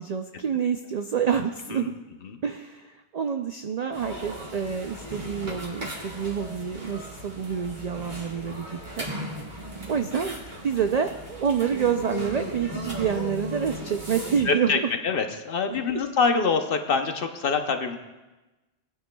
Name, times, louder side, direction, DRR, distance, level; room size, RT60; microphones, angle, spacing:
voice 1, 0.0-1.9 2.4-9.1 9.9-10.4 10.6-14.8 15.9-16.0, right 7 dB, 65° right, 6 dB, 0.4 m, -28 dB
sound 1, 3.9-14.4, equal, 40° right, 2.1 m, -37 dB
voice 2, 14.5-18.0, left 5 dB, 55° left, 6 dB, 0.9 m, -25 dB
19.0 x 9.5 x 2.2 m, 1.1 s
omnidirectional pair, 1.2 m